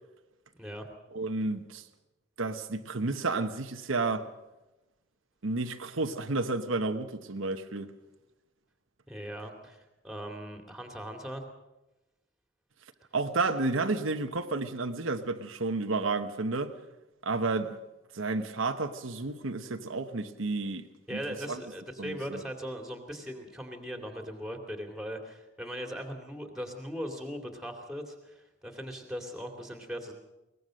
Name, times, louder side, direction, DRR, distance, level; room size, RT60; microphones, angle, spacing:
voice 1, 1.1-1.8 2.4-4.3 5.4-7.9 13.1-16.8 17.2-17.8 18.1-21.2 21.5-21.6 22.0-22.4, right 3 dB, 85° right, 1.1 m, -31 dB
voice 2, 9.1-11.4 21.1-30.1, equal, 5° right, 2.5 m, -39 dB
22.0 x 19.5 x 6.4 m
head